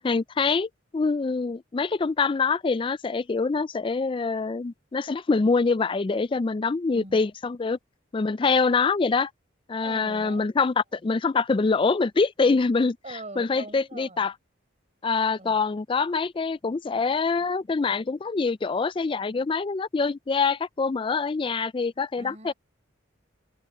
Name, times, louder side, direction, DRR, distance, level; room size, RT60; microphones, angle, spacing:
voice 1, 0.0-7.8 8.1-9.3 9.7-13.0 13.4-14.3 15.0-22.5, left 4 dB, 25° left, 0.3 m, -25 dB
voice 2, 6.9-7.3 9.8-10.5 13.0-14.3 15.4-15.6 22.2-22.5, right 2 dB, 35° right, 4.7 m, -42 dB
open air
head